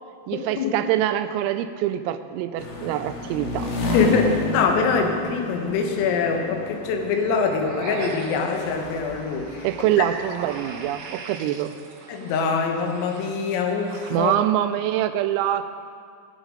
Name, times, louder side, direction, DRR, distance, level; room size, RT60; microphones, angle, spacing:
voice 1, 0.3-3.7 9.6-11.7 14.1-15.8, right 12 dB, 90° right, 10 dB, 3.3 m, -24 dB
sound 1, 2.6-11.0, left 2 dB, 60° left, 2.8 m, -31 dB
voice 2, 3.9-9.7 12.1-14.3, left 5 dB, 80° left, 3 dB, 3.9 m, -24 dB
sound 2, 7.5-14.1, right 4 dB, 70° right, 3.3 m, -40 dB
18.5 x 9.2 x 5.0 m, 2.3 s
omnidirectional pair, 5.9 m